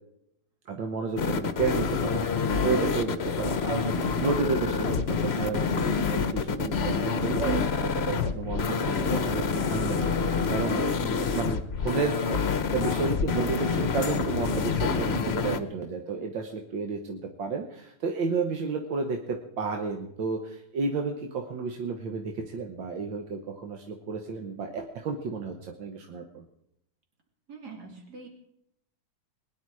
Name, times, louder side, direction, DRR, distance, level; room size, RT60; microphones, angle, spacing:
voice 1, 0.7-12.4 12.7-26.4, right 4 dB, 85° right, 3 dB, 2.0 m, -32 dB
sound 1, 1.2-15.6, left 5 dB, 50° left, 0.8 m, -27 dB
voice 2, 27.5-28.3, right 4 dB, 60° right, 2 dB, 3.3 m, -44 dB
21.0 x 10.5 x 4.8 m, 0.76 s
omnidirectional pair, 2.0 m